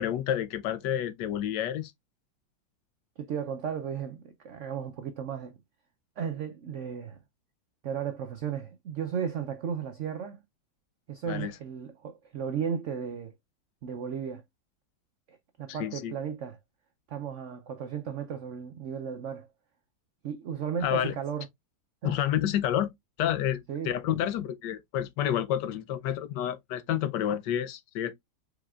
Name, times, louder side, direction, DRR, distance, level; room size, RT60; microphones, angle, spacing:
voice 1, 0.0-1.9 11.3-11.5 15.7-16.1 20.8-21.1 22.0-22.9 23.2-28.1, left 10 dB, 75° left, 1.2 m, -29 dB
voice 2, 3.2-5.6 6.2-7.2 7.8-10.4 11.1-13.3 13.8-14.4 15.3-16.6 17.1-19.5 20.2-21.5 22.0-22.2 23.7-23.9, right 7 dB, 75° right, 0.6 m, -35 dB
4.8 x 4.1 x 2.3 m
omnidirectional pair, 1.9 m